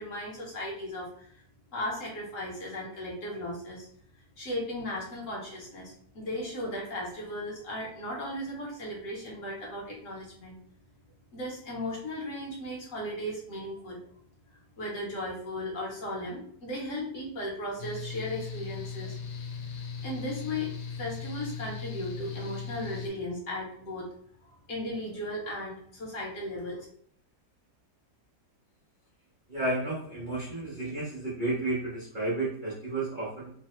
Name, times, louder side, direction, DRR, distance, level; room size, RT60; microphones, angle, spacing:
voice 1, 0.0-1.4 1.7-3.9 4.4-10.6 11.3-14.0 14.5-19.2 19.7-24.1 24.5-26.9, left 1 dB, 55° left, -3 dB, 1.0 m, -36 dB
Mechanical fan, 17.8-23.1, left 5 dB, 75° left, 1.1 m, -38 dB
voice 2, 29.5-33.5, right 2 dB, 80° right, -8 dB, 0.4 m, -32 dB
3.1 x 2.0 x 2.9 m, 0.62 s
omnidirectional pair, 1.9 m